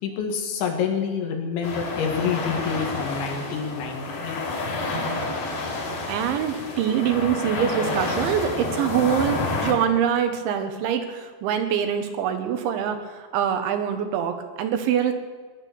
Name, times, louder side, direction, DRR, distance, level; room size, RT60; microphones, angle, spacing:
voice 1, 0.0-4.4, left 6 dB, 80° left, 3 dB, 4.4 m, -27 dB
sound 1, 1.6-9.7, left 2 dB, 55° left, 4.7 m, -29 dB
voice 2, 5.7-15.1, right 8 dB, 85° right, 7 dB, 3.7 m, -24 dB
19.5 x 10.5 x 7.1 m, 1.4 s
omnidirectional pair, 5.2 m